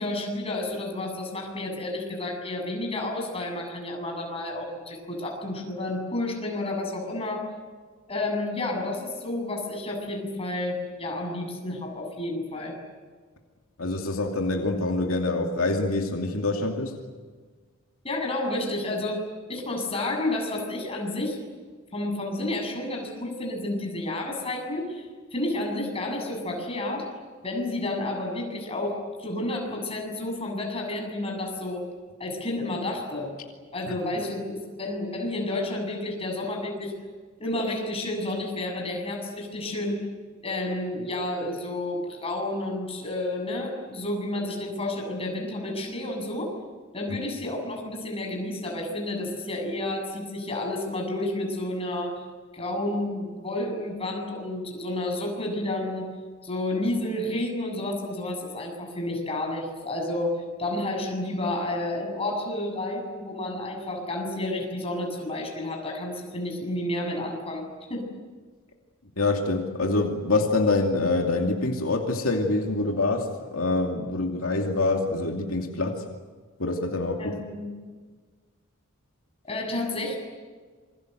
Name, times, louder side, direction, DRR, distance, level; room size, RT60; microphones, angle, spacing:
voice 1, 0.0-7.4 8.1-12.8 18.0-19.2 19.5-21.4 21.9-27.1 27.4-31.8 32.2-33.3 33.7-36.9 37.4-40.0 40.4-46.5 46.9-52.3 52.5-56.1 56.4-68.1 77.2-77.7 79.4-80.2, left 1 dB, 30° left, 1 dB, 7.5 m, -30 dB
voice 2, 13.8-16.9 69.2-76.0 76.6-77.4, left 2 dB, 80° left, 2 dB, 2.6 m, -25 dB
28.0 x 24.0 x 8.0 m, 1.5 s
head